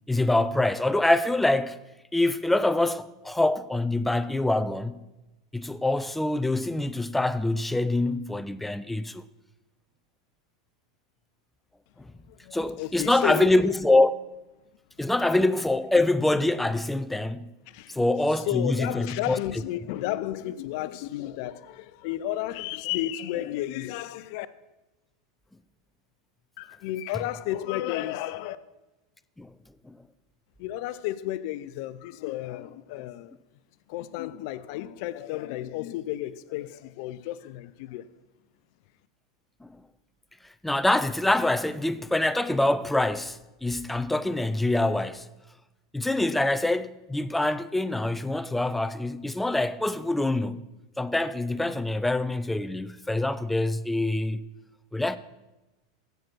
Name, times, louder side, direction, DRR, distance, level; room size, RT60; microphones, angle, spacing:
voice 1, 0.1-1.8 2.1-5.0 5.5-9.2 12.5-14.1 15.0-17.5 17.9-19.4 29.4-29.5 29.9-30.0 39.6-39.7 40.6-45.3 45.9-50.6 51.0-54.4 54.9-55.2, left 2 dB, 5° left, 0.5 m, -25 dB
voice 2, 12.3-13.6 15.0-15.1 17.7-18.0 18.4-24.5 26.6-28.6 30.6-33.3 33.9-38.1, left 13 dB, 60° left, 0.5 m, -32 dB
7.8 x 7.4 x 6.0 m
hypercardioid pair, 100°, 3 cm